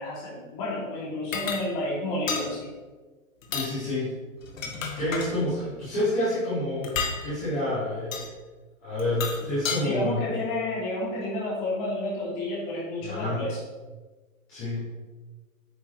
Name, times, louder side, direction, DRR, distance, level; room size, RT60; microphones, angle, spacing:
voice 1, 0.0-2.7 5.6-5.7 9.4-9.5 9.8-13.6, left 1 dB, 25° left, -6 dB, 2.8 m, -31 dB
sound 1, 1.3-1.6 2.3-2.5 3.4-3.7 4.4-5.3 6.8-7.2 8.1-8.3 9.0-9.8, left 5 dB, 65° left, 1.6 m, -31 dB
voice 2, 3.5-4.1 4.6-7.0 7.2-8.3 8.8-10.2 13.0-13.5 14.5-14.9, left 1 dB, 5° left, -15 dB, 0.5 m, -28 dB
8.9 x 7.6 x 3.2 m, 1.3 s
hypercardioid pair, 170°, 42 cm